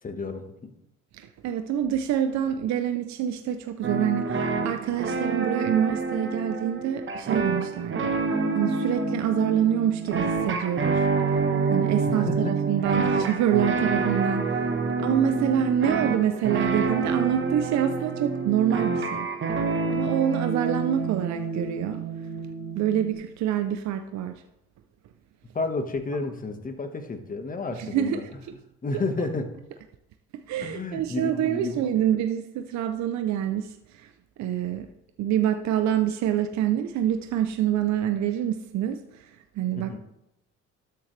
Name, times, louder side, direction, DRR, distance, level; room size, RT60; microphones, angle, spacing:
voice 1, 0.0-0.7 12.0-12.5 25.5-28.2 28.8-29.5 30.6-32.0 39.8-40.0, left 3 dB, 30° left, 6 dB, 1.4 m, -31 dB
voice 2, 1.2-8.1 8.5-11.0 11.7-14.7 15.0-19.3 19.9-22.0 22.7-24.4 27.8-28.2 30.3-34.1 34.4-34.9 35.2-39.3 39.6-40.0, right 10 dB, 65° right, 7 dB, 0.7 m, -26 dB
sound 1, 3.8-23.1, right 4 dB, 40° right, 1.4 m, -27 dB
12.5 x 6.9 x 3.3 m, 0.86 s
cardioid pair, 95°, 30 cm